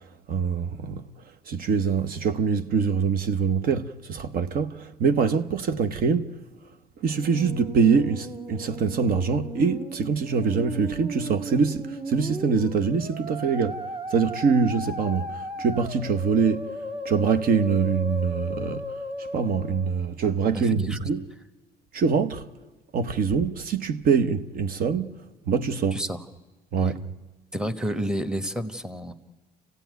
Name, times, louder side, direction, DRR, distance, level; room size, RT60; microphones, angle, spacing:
voice 1, 0.3-1.0 1.5-6.3 7.0-13.8 14.1-16.7 17.0-18.9 19.2-21.2 21.9-22.4 22.9-25.1 25.5-26.0 26.7-27.0, right 5 dB, 60° right, 1.0 m, -24 dB
Musical instrument, 7.0-20.0, right 1 dB, 40° right, 2.4 m, -36 dB
voice 2, 20.5-21.1 25.9-26.2 26.8-26.9 27.5-29.1, equal, 5° right, 1.2 m, -30 dB
27.0 x 16.0 x 9.3 m
cardioid pair, 110°, 17 cm